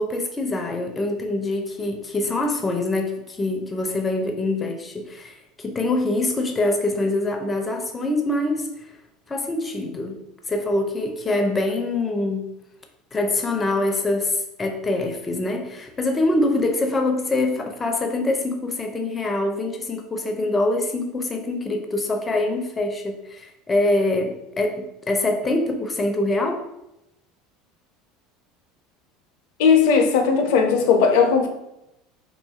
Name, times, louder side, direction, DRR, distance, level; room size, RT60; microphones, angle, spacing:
voice 1, 0.0-8.7 9.3-10.2 10.5-12.5 13.1-26.6, left 2 dB, 20° left, 0.5 m, -24 dB
voice 2, 29.6-31.5, left 5 dB, 75° left, 0.4 m, -17 dB
2.6 x 2.3 x 2.7 m
supercardioid pair, 90°, 0 cm